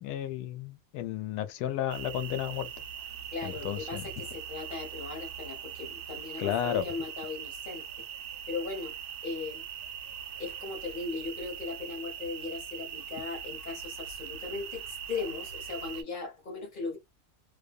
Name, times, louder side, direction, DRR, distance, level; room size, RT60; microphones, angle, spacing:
voice 1, 0.0-2.7 3.4-4.1 6.4-6.9, left 10 dB, 90° left, 1.1 m, -33 dB
sound 1, 1.9-16.0, right 9 dB, 85° right, 1.1 m, -41 dB
voice 2, 3.3-7.9 8.5-8.9 9.2-9.6 10.4-17.0, left 4 dB, 40° left, 0.9 m, -38 dB
2.7 x 2.2 x 2.4 m
omnidirectional pair, 1.6 m